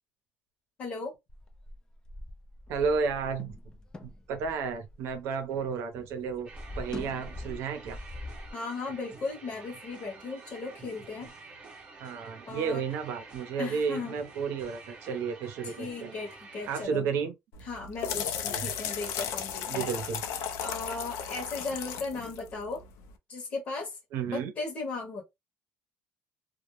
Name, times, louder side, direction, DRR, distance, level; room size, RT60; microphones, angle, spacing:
voice 1, 0.8-1.1 8.5-11.3 12.5-12.8 13.6-14.2 15.6-17.1 17.6-19.9 20.6-22.8 23.3-24.0 24.2-25.2, left 3 dB, 35° left, 0.8 m, -36 dB
sound 1, 1.3-5.7 6.0-8.5, left 1 dB, 15° left, 0.3 m, -43 dB
voice 2, 2.7-3.6 4.0-6.5 6.8-8.0 12.0-16.1 16.7-17.3 18.5-18.7 19.7-20.2 24.1-24.5, right 6 dB, 65° right, 0.6 m, -32 dB
sound 2, 6.5-16.9, right 3 dB, 25° right, 0.7 m, -49 dB
sound 3, 17.5-23.1, left 8 dB, 80° left, 0.5 m, -35 dB
2.2 x 2.0 x 3.0 m
cardioid pair, 160°, 5 cm